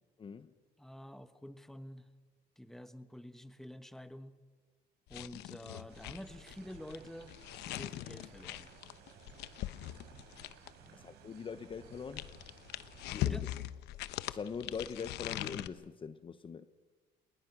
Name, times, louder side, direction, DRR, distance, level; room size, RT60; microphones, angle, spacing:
voice 1, 0.2-0.5 11.0-12.3 13.1-13.4 14.3-16.7, left 6 dB, 30° left, 0.8 m, -42 dB
voice 2, 0.8-2.1 2.6-4.4 5.1-7.3 7.7-8.7 10.8-11.1 13.2-13.5, equal, ahead, 1.3 m, -48 dB
sound 1, 5.1-10.9 11.7-15.7, left 14 dB, 85° left, 0.9 m, -41 dB
sound 2, 5.9-13.1, right 8 dB, 80° right, 4.2 m, -58 dB
27.5 x 20.0 x 6.1 m
cardioid pair, 110°, 17 cm